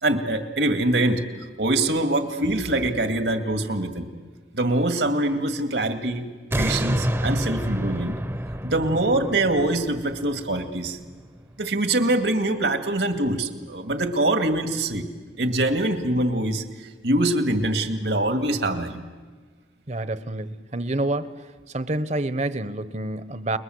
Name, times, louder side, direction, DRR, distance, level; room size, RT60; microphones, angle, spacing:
voice 1, 0.0-1.2 1.6-4.1 4.5-6.2 6.6-8.2 8.6-11.0 11.6-15.1 15.4-19.0, right 1 dB, 75° right, 7 dB, 2.2 m, -24 dB
sound 1, 6.5-11.6 12.1-12.2, equal, 15° right, 0.9 m, -29 dB
voice 2, 19.9-21.3 21.7-23.6, right 2 dB, 40° right, 13 dB, 1.1 m, -28 dB
29.5 x 21.5 x 7.9 m, 1.4 s
head